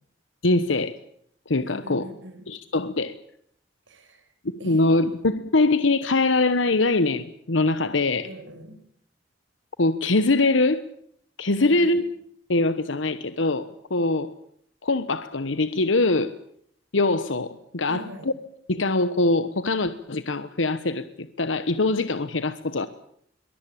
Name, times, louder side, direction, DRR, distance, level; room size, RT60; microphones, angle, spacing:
voice 1, 0.4-0.9 1.5-2.1 2.5-3.1 4.4-8.3 9.8-10.9 11.4-12.0 12.5-14.3 14.8-16.3 16.9-18.0 18.7-22.9, left 2 dB, 85° left, 12 dB, 1.2 m, -23 dB
voice 2, 1.6-2.5 3.9-4.3 4.6-5.2 8.2-8.8 11.5-12.0 17.8-18.3, right 1 dB, 85° right, 8 dB, 5.9 m, -42 dB
23.5 x 20.5 x 8.6 m, 0.67 s
head